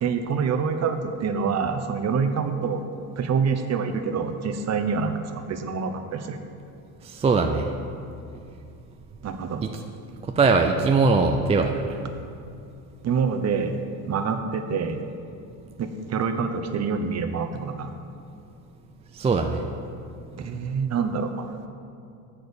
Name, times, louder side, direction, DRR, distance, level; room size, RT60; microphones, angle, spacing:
voice 1, 0.0-2.8 3.2-6.4 9.2-9.6 13.0-13.8 14.1-15.0 15.8-17.9 20.4-21.7, right 5 dB, 35° right, 7 dB, 0.9 m, -26 dB
voice 2, 7.0-7.7 10.3-11.8 19.2-19.6, right 4 dB, 15° right, 4 dB, 0.4 m, -21 dB
7.7 x 6.4 x 6.9 m, 2.5 s
supercardioid pair, 85°, 44 cm